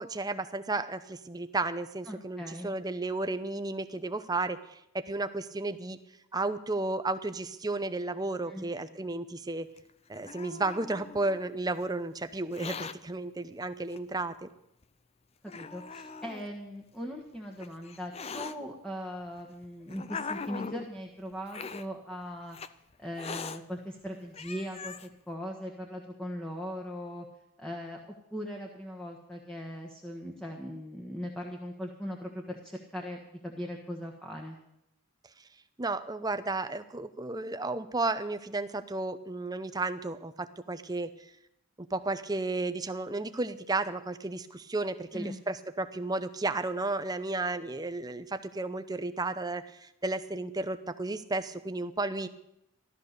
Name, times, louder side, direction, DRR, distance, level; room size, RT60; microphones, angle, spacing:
voice 1, 0.0-6.0 6.3-9.7 10.1-14.5 35.8-41.1 41.9-52.3, right 2 dB, 15° right, 11 dB, 0.7 m, -33 dB
voice 2, 2.1-2.7 8.5-8.7 15.4-22.6 23.0-27.3 27.6-28.0 28.3-34.6 45.1-45.4, equal, 5° left, -1 dB, 1.4 m, -39 dB
Hiss, 9.8-11.4 12.4-13.0 13.9-14.0 14.8-14.9 15.5-16.5 17.3-18.5 19.4-20.9 21.5-21.9 22.5-22.7 23.2-23.6 24.1-24.2 24.3-25.1, left 5 dB, 30° left, 0.5 m, -41 dB
15.0 x 12.5 x 6.7 m, 0.82 s
head